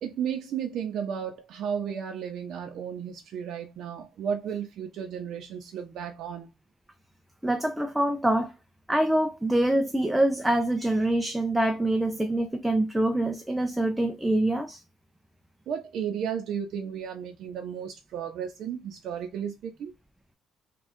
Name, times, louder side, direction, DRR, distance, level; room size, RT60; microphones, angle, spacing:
voice 1, 0.0-6.5 15.7-19.9, right 8 dB, 55° right, 0.6 m, -33 dB
voice 2, 7.4-8.5 8.9-14.8, right 1 dB, 5° right, 0.3 m, -25 dB
3.5 x 2.3 x 4.2 m
cardioid pair, 170°, 0 cm